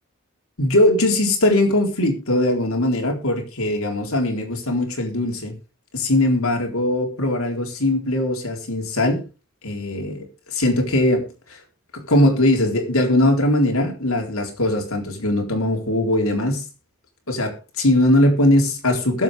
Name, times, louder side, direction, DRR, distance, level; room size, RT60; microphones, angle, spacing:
voice 1, 0.6-5.5 5.9-9.2 9.6-11.6 11.9-16.6 17.3-19.2, left 1 dB, 80° left, 4.1 m, -20 dB
21.5 x 7.9 x 3.6 m
head